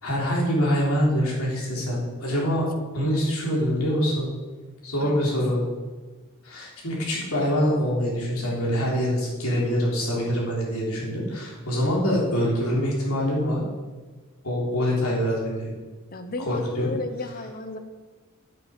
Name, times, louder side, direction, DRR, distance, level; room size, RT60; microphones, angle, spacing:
voice 1, 0.0-2.7 2.9-4.3 4.8-5.6 6.4-13.6 14.4-15.7 16.5-16.9, equal, 75° left, -3 dB, 3.7 m, -25 dB
voice 2, 16.1-17.8, left 2 dB, 40° left, 7 dB, 1.0 m, -34 dB
9.8 x 9.0 x 5.3 m, 1.3 s
head